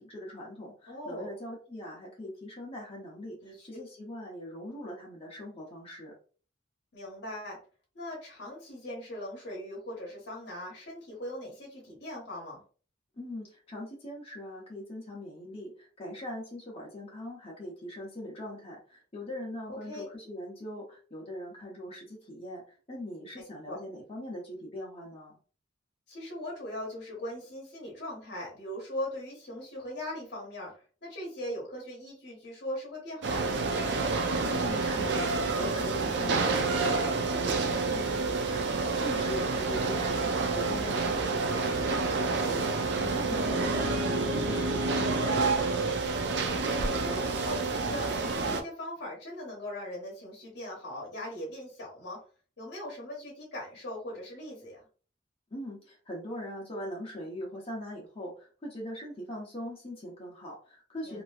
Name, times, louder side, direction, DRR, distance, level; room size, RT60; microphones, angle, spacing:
voice 1, 0.0-6.1 13.2-22.6 22.9-25.4 34.4-46.2 55.5-61.2, equal, 30° left, -3 dB, 0.9 m, -41 dB
voice 2, 0.9-1.4 3.4-3.7 6.9-7.6 7.9-12.6 19.7-20.1 23.6-23.8 26.1-30.7 31.0-33.8 40.6-40.9 43.2-43.7 44.9-45.4 46.8-52.2 52.6-54.8 61.0-61.2, left 1 dB, 60° left, -3 dB, 1.0 m, -40 dB
sound 1, 33.2-48.6, right 3 dB, 60° right, 0.4 m, -28 dB
2.9 x 2.6 x 2.4 m, 0.40 s
head